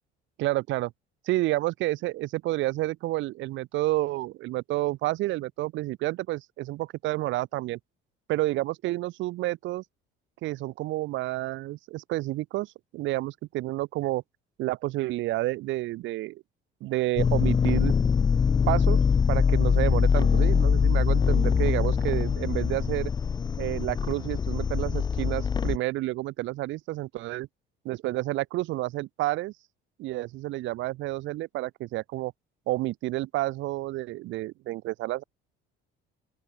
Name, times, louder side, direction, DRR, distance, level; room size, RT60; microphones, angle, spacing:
voice 1, 0.4-0.9 1.3-7.8 8.3-9.8 10.4-14.2 14.6-16.4 16.8-17.9 18.7-19.0 19.3-23.1 23.6-27.5 27.9-29.5 30.0-32.3 32.7-35.2, right 17 dB, 70° right, 2.6 m, -30 dB
sound 1, 17.2-25.8, left 6 dB, 20° left, 0.5 m, -23 dB
open air
cardioid pair, 140°, 20 cm